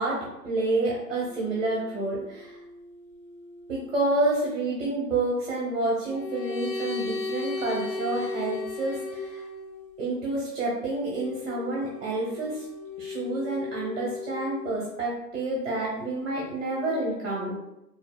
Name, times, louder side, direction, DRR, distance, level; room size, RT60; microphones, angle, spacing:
voice 1, 0.0-2.6 3.7-9.4 10.0-12.7 13.0-17.6, right 2 dB, 50° right, -4 dB, 1.0 m, -29 dB
sound 1, 1.2-4.1 6.1-10.0 11.1-14.8 16.3-17.0, left 3 dB, 90° left, 1.1 m, -37 dB
3.8 x 2.5 x 2.3 m, 0.90 s
hypercardioid pair, 145°, 49 cm